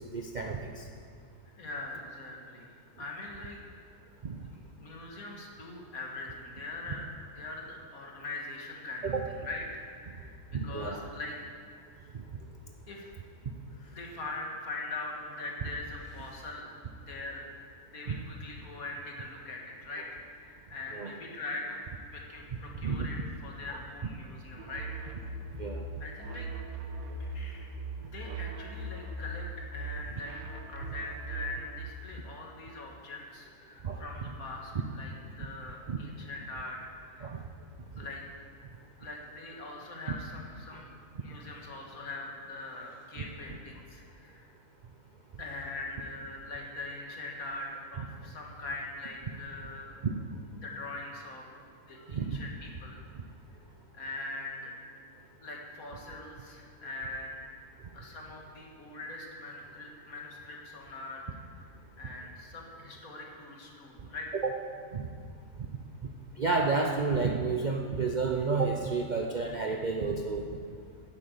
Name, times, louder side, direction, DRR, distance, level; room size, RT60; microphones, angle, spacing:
voice 1, 0.1-0.8 4.2-4.4 9.0-9.2 10.5-11.0 18.1-18.2 20.9-21.1 22.8-23.1 25.6-25.8 33.8-34.0 35.9-36.0 37.2-37.4 50.0-50.1 52.1-52.4 64.3-64.5 64.9-65.1 66.4-70.5, right 4 dB, 50° right, 2 dB, 0.5 m, -30 dB
voice 2, 1.6-3.6 4.8-7.1 7.4-11.4 12.9-13.1 13.7-16.7 17.1-17.5 17.9-21.8 22.1-25.1 26.0-26.5 27.2-30.4 30.7-37.4 38.0-38.2 39.0-44.5 45.4-50.0 50.6-51.5 51.9-53.0 53.9-54.7 55.4-57.4 57.9-61.7 62.0-64.3, left 2 dB, 70° left, -1 dB, 2.1 m, -42 dB
sound 1, 24.6-31.9, right 2 dB, 70° right, 1.4 m, -40 dB
10.5 x 8.1 x 7.8 m, 2.2 s
omnidirectional pair, 1.6 m